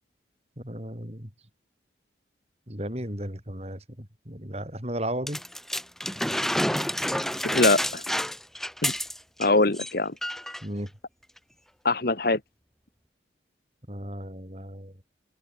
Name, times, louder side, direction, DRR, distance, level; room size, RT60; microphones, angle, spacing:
voice 1, 0.6-1.3 2.7-5.4 10.6-10.9 13.9-15.0, right 1 dB, 35° right, 6.8 m, -35 dB
sound 1, 5.3-9.5 9.7-9.9 10.2-10.6 11.4-11.5, equal, ahead, 1.1 m, -29 dB
voice 2, 7.4-8.0 8.8-9.0 9.4-10.1 11.8-12.4, left 2 dB, 55° left, 1.6 m, -23 dB
head